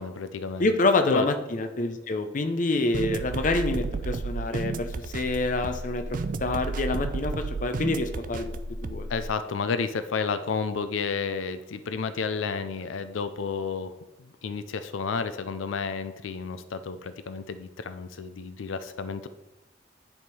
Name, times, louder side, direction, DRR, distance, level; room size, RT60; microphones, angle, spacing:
voice 1, 0.0-0.7 1.1-1.3 9.1-19.3, left 5 dB, 90° left, 11 dB, 0.5 m, -31 dB
voice 2, 0.6-6.0 6.4-9.1, left 2 dB, 40° left, 7 dB, 0.6 m, -27 dB
sound 1, 2.9-9.3, right 3 dB, 45° right, 0.4 m, -32 dB
10.0 x 3.6 x 4.7 m, 0.97 s
head